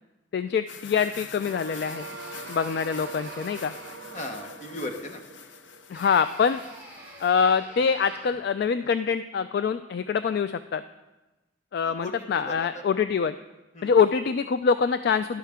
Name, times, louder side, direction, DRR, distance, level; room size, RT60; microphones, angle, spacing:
voice 1, 0.3-2.0 2.5-3.7 5.9-6.6 7.2-10.8 11.7-13.4 13.8-15.4, left 6 dB, 60° left, 11 dB, 0.3 m, -24 dB
Steam train sound effect, 0.7-7.4, left 6 dB, 85° left, 0.7 m, -46 dB
sound 1, 1.4-6.6, right 4 dB, 70° right, 0.5 m, -43 dB
sound 2, 1.7-4.2 5.9-8.6, right 1 dB, 10° right, 3.5 m, -47 dB
voice 2, 4.1-5.2 11.8-12.8 13.7-13.9, left 1 dB, 40° left, 5 dB, 1.2 m, -37 dB
11.5 x 11.5 x 3.6 m, 1.1 s
head